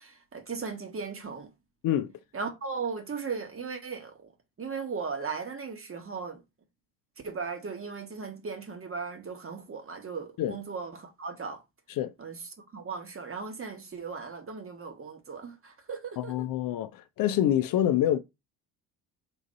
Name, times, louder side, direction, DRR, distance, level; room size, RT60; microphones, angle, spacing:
voice 1, 0.0-1.5 2.3-4.3 4.6-6.4 7.2-11.6 12.2-16.5, right 5 dB, 30° right, 1.2 m, -37 dB
voice 2, 16.2-18.2, left 11 dB, 55° left, 0.5 m, -26 dB
3.9 x 2.6 x 4.0 m
hypercardioid pair, 65°, 42 cm